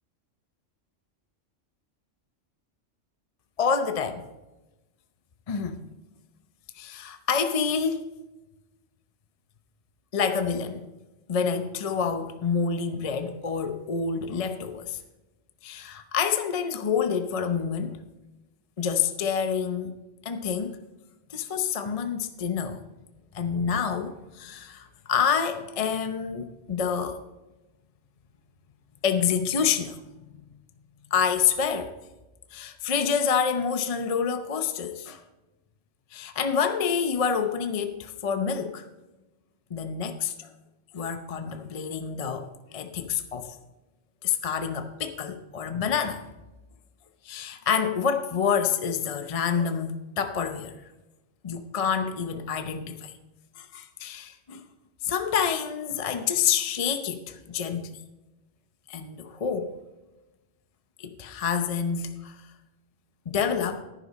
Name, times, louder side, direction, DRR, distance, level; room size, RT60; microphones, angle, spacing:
voice 1, 3.6-4.3 5.5-5.8 6.7-8.1 10.1-10.9 11.3-15.0 15.6-18.0 18.8-20.0 20.2-20.8 21.3-22.8 23.3-27.2 29.0-30.3 31.1-31.9 32.5-35.2 36.1-38.9 39.7-40.5 40.9-43.6 44.2-46.2 47.2-50.8 51.4-53.1 53.6-54.6 55.0-58.0 58.9-59.7 61.0-62.4 63.3-63.8, left 6 dB, 35° left, 0.6 m, -28 dB
11.0 x 10.0 x 4.1 m
omnidirectional pair, 1.3 m